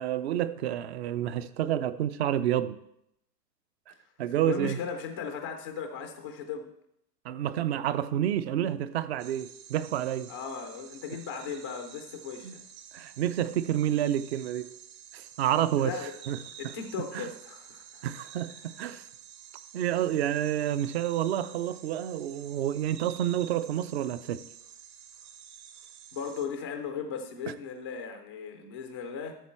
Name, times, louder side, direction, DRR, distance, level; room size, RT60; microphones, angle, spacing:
voice 1, 0.0-2.8 4.2-4.8 7.2-10.3 12.4-12.6 12.9-14.7 15.1-15.9 16.3-16.4 16.6-16.7 17.1-17.3 18.0-19.1 19.7-24.4, right 11 dB, 40° right, 0.5 m, -29 dB
voice 2, 4.4-6.7 10.3-12.6 15.8-16.1 16.6-18.0 26.1-29.4, left 6 dB, 20° left, 0.3 m, -37 dB
sound 1, 9.2-26.5, right 9 dB, 55° right, 1.4 m, -50 dB
13.0 x 6.9 x 4.3 m
hypercardioid pair, 140°, 50 cm